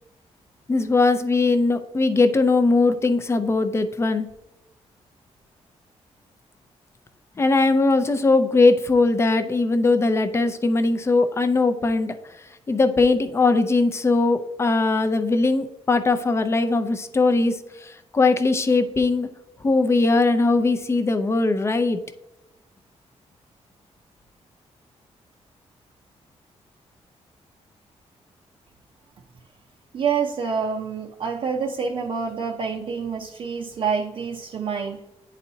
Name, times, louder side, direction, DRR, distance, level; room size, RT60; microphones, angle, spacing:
voice 1, 0.7-4.3 7.4-12.1 12.7-19.3 19.6-22.0, left 3 dB, 25° left, 8 dB, 0.5 m, -20 dB
voice 2, 29.9-35.0, right 6 dB, 50° right, 0 dB, 0.5 m, -27 dB
9.7 x 4.1 x 2.7 m, 0.92 s
wide cardioid pair, 155°, 12 cm